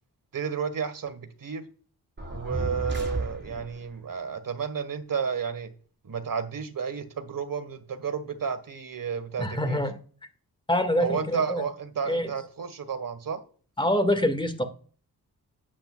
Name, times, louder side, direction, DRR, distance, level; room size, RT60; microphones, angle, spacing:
voice 1, 0.3-1.7 2.3-5.7 6.0-9.8 11.0-13.4, right 6 dB, 55° right, 1.5 m, -32 dB
sound 1, 2.2-3.9, right 2 dB, 25° right, 4.4 m, -32 dB
voice 2, 9.4-10.0 10.7-11.6 12.1-12.3 13.8-14.6, left 1 dB, 10° left, 1.9 m, -25 dB
10.5 x 9.1 x 2.4 m
cardioid pair, 45°, 39 cm